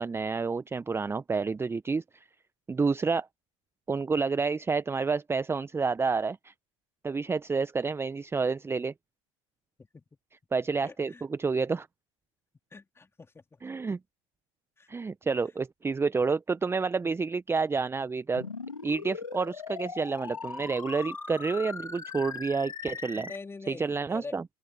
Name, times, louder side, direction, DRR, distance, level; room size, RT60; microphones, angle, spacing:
voice 1, 0.0-2.3 2.7-3.3 3.9-6.5 7.0-8.9 10.5-11.9 13.6-14.0 14.9-18.5 18.8-23.3 23.7-24.4, right 4 dB, 15° right, 1.1 m, -29 dB
voice 2, 10.8-11.2 12.7-13.4 14.8-14.9 17.0-17.1 23.2-24.4, left 4 dB, 15° left, 4.3 m, -44 dB
sound 1, 18.3-23.4, left 5 dB, 85° left, 2.4 m, -39 dB
figure-of-eight pair, 75°, 17 cm